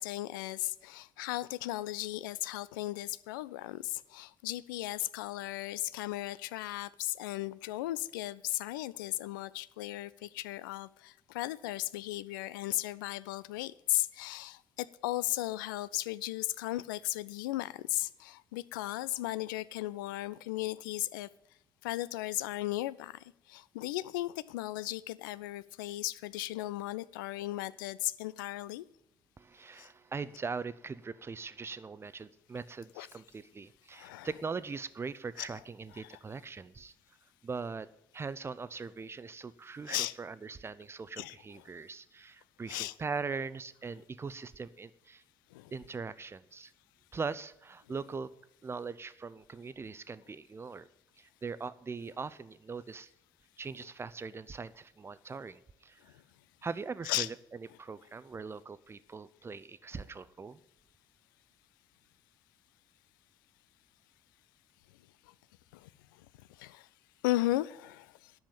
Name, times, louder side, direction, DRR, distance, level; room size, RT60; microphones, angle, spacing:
voice 1, 0.0-21.3 21.8-28.9 29.8-29.9 33.0-33.1 33.9-34.3 35.4-35.5 35.9-36.2 39.9-40.1 41.2-41.4 42.7-42.9 45.5-45.7 56.0-56.2 57.0-57.3 65.3-65.4 65.7-66.9 67.2-68.3, left 17 dB, 70° left, 0.4 m, -36 dB
voice 2, 29.4-36.9 37.4-37.9 38.1-45.2 45.7-46.7 47.1-48.3 48.6-50.9 51.2-53.1 53.6-56.0 56.6-60.6, right 4 dB, 20° right, 0.6 m, -41 dB
10.5 x 7.1 x 9.2 m
figure-of-eight pair, 50°, 11 cm